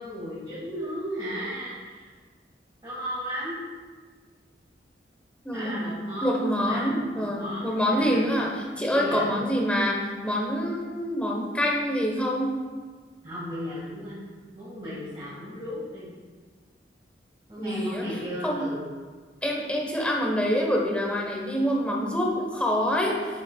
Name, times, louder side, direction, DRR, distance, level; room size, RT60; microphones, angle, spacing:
voice 1, 0.0-2.1 2.8-3.6 5.5-8.2 8.9-9.3 13.2-14.2 14.5-16.1 17.5-18.9, equal, 30° right, -10 dB, 1.8 m, -35 dB
voice 2, 5.4-5.8 6.2-10.0 10.2-12.6 17.6-18.1 18.4-18.7 19.4-23.2, equal, 5° left, -2 dB, 1.0 m, -26 dB
7.2 x 7.1 x 2.3 m, 1.5 s
head